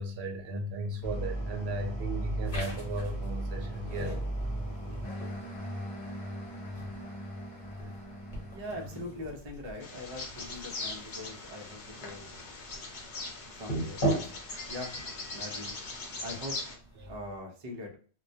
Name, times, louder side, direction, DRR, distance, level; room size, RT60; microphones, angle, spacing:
voice 1, 0.0-4.2 5.4-5.5 17.0-17.1, right 1 dB, 75° right, 0.8 m, -36 dB
sound 1, 1.0-9.3, right 1 dB, 35° left, 0.6 m, -37 dB
sound 2, 2.4-17.2, right 1 dB, 55° left, 1.0 m, -40 dB
voice 2, 8.5-12.3 13.6-14.0 14.7-14.9 15.3-15.8 16.2-16.6 17.1-18.0, left 1 dB, 40° right, 0.4 m, -41 dB
Bird vocalization bird call bird song, 9.8-16.7, left 3 dB, 85° left, 0.9 m, -41 dB
2.2 x 2.1 x 2.6 m
omnidirectional pair, 1.1 m